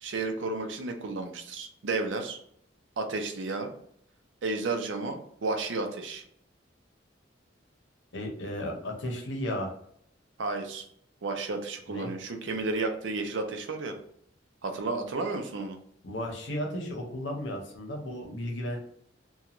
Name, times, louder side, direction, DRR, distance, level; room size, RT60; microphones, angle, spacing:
voice 1, 0.0-2.4 3.0-3.7 4.4-6.2 10.4-10.9 11.2-14.0 14.6-15.8, right 3 dB, 80° right, 5 dB, 0.5 m, -32 dB
voice 2, 8.1-9.7 11.9-12.1 16.0-18.9, left 1 dB, 80° left, 2 dB, 0.8 m, -34 dB
2.9 x 2.3 x 2.4 m, 0.67 s
head